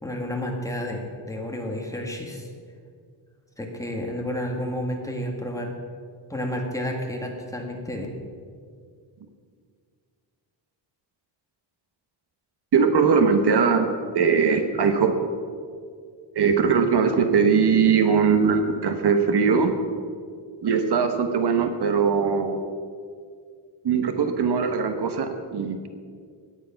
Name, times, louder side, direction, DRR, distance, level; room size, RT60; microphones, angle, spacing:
voice 1, 0.0-2.5 3.6-5.8 6.3-8.1, left 1 dB, 5° left, 0 dB, 1.8 m, -31 dB
voice 2, 12.7-15.2 16.3-19.8 20.6-22.6 23.8-25.9, right 5 dB, 60° right, 7 dB, 1.2 m, -21 dB
17.0 x 10.5 x 5.8 m, 2.1 s
wide cardioid pair, 175°, 45 cm